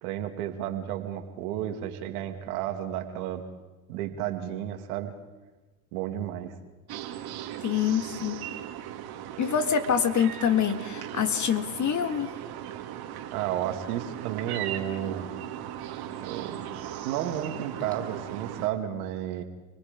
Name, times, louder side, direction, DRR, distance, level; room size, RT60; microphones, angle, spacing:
voice 1, 0.0-3.4 3.9-5.1 5.9-6.6 13.3-15.3 16.2-16.6 17.0-19.4, right 11 dB, 75° right, 5 dB, 2.7 m, -32 dB
sound 1, 6.9-18.7, right 11 dB, 55° right, 2.6 m, -38 dB
voice 2, 7.6-8.5 9.4-12.3, left 8 dB, 40° left, 9 dB, 2.3 m, -26 dB
30.0 x 20.5 x 5.3 m, 1.2 s
hypercardioid pair, 85°, 44 cm